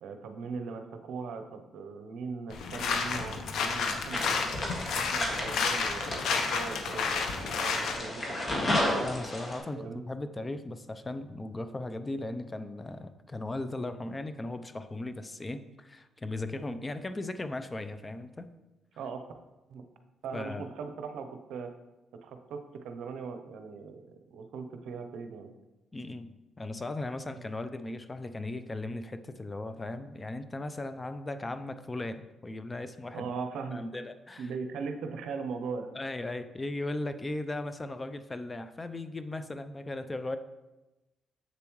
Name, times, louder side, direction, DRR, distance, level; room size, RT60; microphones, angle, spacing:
voice 1, 0.0-4.4 4.9-8.5 9.7-10.0 19.0-19.3 19.7-19.8 20.2-21.7 22.1-25.5 27.2-27.4 33.1-33.9 34.4-35.9, right 5 dB, 80° right, 7 dB, 0.7 m, -39 dB
sound 1, 2.5-8.0, left 5 dB, 75° left, 0.9 m, -31 dB
sound 2, 4.1-9.6, left 1 dB, 40° left, 1.8 m, -33 dB
voice 2, 9.0-18.5 20.3-20.6 25.9-33.3 33.7-34.5 35.9-40.4, left 2 dB, 20° left, 10 dB, 0.5 m, -37 dB
7.5 x 6.9 x 3.1 m, 1.0 s
cardioid pair, 90°, 0 cm